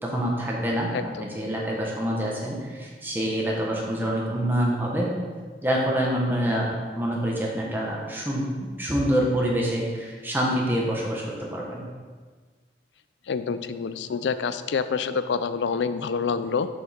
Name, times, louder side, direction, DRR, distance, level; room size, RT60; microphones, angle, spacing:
voice 1, 0.0-0.9 1.2-5.1 5.6-6.7 7.0-8.4 8.8-11.8, equal, 10° right, -3 dB, 1.2 m, -26 dB
voice 2, 13.3-16.7, left 5 dB, 80° left, 11 dB, 0.4 m, -27 dB
7.1 x 5.4 x 4.4 m, 1.5 s
head